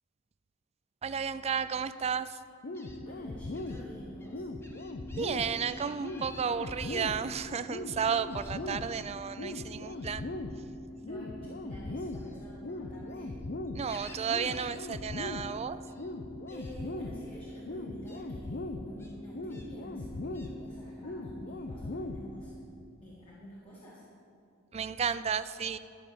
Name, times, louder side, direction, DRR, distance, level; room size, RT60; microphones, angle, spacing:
voice 1, 1.0-2.4 5.1-10.2 13.7-15.8 24.7-25.8, right 6 dB, 30° right, 13 dB, 0.4 m, -33 dB
Gull seagull, 1.6-1.8 2.7-3.0 3.5-3.8 4.2-7.0 8.3-9.0 9.9-10.2 12.0-13.3 13.6-14.8 15.0-15.3 15.6-16.1 16.5-16.7 17.5-17.6 18.0-18.2 19.0-19.7 20.3-20.5, left 1 dB, 10° left, 1.1 m, -54 dB
sound 1, 2.6-22.6, left 2 dB, 50° left, 0.7 m, -39 dB
voice 2, 3.0-4.5 10.9-13.3 16.5-22.6 23.0-24.0, equal, 25° left, -7 dB, 2.2 m, -48 dB
12.5 x 7.1 x 7.4 m, 2.5 s
head